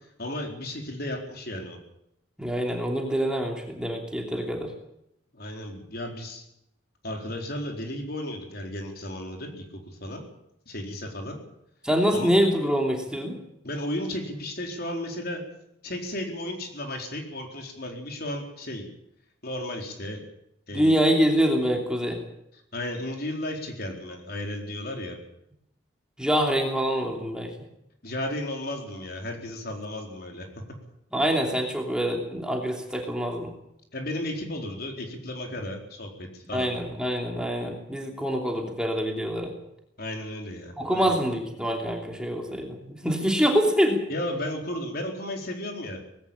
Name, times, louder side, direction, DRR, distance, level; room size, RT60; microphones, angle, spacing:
voice 1, 0.2-1.8 5.3-6.4 7.0-10.2 10.7-11.4 12.1-12.3 13.6-15.4 15.8-18.9 19.4-20.3 20.7-21.0 22.7-25.2 28.0-30.5 33.9-36.7 40.0-41.1 44.1-46.0, left 1 dB, 50° left, 3 dB, 4.3 m, -34 dB
voice 2, 2.4-4.7 11.8-13.4 20.7-22.2 26.2-27.5 31.1-33.5 36.5-39.5 40.8-44.0, equal, 5° right, 1 dB, 2.9 m, -25 dB
19.5 x 16.5 x 8.7 m, 0.78 s
head